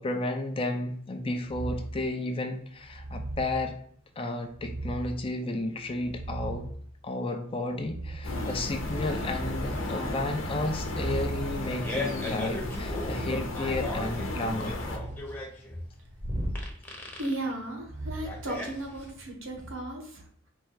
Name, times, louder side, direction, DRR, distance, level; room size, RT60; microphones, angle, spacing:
voice 1, 0.0-3.8 4.2-6.7 7.0-14.8, left 2 dB, 30° left, 5 dB, 0.6 m, -32 dB
sound 1, 1.5-2.0 2.8-3.6 4.5-5.2 5.8-6.8 7.8-8.4 8.8-9.7 10.7-13.4 14.7-15.3 16.1-16.6 17.8-19.0 19.5-19.7, right 1 dB, 25° right, 0.8 m, -38 dB
sound 2, 8.2-15.0, left 1 dB, 75° left, 0.9 m, -34 dB
Fart, 11.6-19.3, left 2 dB, 10° left, 0.9 m, -38 dB
voice 2, 17.2-20.5, right 1 dB, 75° right, 2 dB, 1.3 m, -36 dB
4.5 x 2.5 x 4.6 m, 0.62 s
head